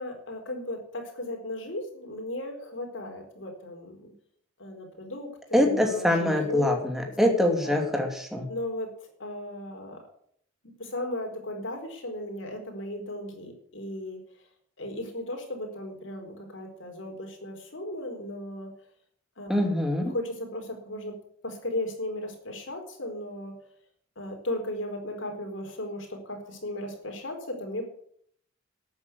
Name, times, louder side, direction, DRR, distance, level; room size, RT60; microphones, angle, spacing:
voice 1, 0.0-4.1 4.6-6.6 7.6-7.9 8.5-8.9 9.2-10.0 10.8-14.2 14.8-18.7 19.4-19.7 20.1-21.1 21.4-23.5 24.2-27.8, left 1 dB, 70° left, 3 dB, 4.3 m, -36 dB
voice 2, 5.5-8.5 19.5-20.1, left 1 dB, ahead, 3 dB, 2.6 m, -24 dB
12.0 x 8.9 x 8.2 m, 0.64 s
head